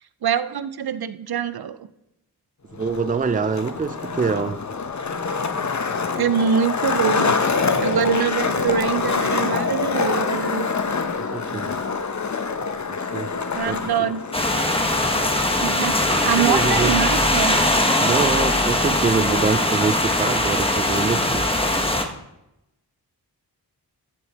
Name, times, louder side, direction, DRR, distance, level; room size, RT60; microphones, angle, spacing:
voice 1, 0.2-1.9 6.1-7.4 7.8-10.7 13.5-14.2 15.6-17.6, right 8 dB, 65° right, 0.6 m, -24 dB
Skateboard, 2.7-19.7, left 4 dB, 45° left, 0.9 m, -26 dB
voice 2, 2.8-4.6 11.2-11.7 12.9-13.4 13.7-13.8 16.4-17.0 18.0-21.5, right 5 dB, 20° right, 0.5 m, -25 dB
sound 1, 14.3-22.1, left 1 dB, 15° left, 1.2 m, -21 dB
14.5 x 5.1 x 4.2 m
cardioid pair, 65°, 40 cm